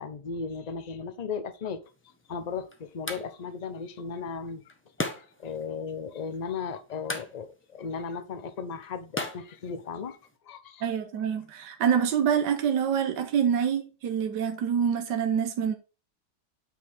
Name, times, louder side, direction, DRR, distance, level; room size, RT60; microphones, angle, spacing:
voice 1, 0.0-1.8 2.3-4.6 5.2-10.2 10.5-10.9, left 5 dB, 40° left, 0.6 m, -36 dB
sound 1, 1.8-10.4, left 1 dB, 10° left, 1.0 m, -41 dB
voice 2, 10.8-15.7, right 8 dB, 80° right, 1.6 m, -26 dB
9.2 x 5.0 x 3.6 m
omnidirectional pair, 1.9 m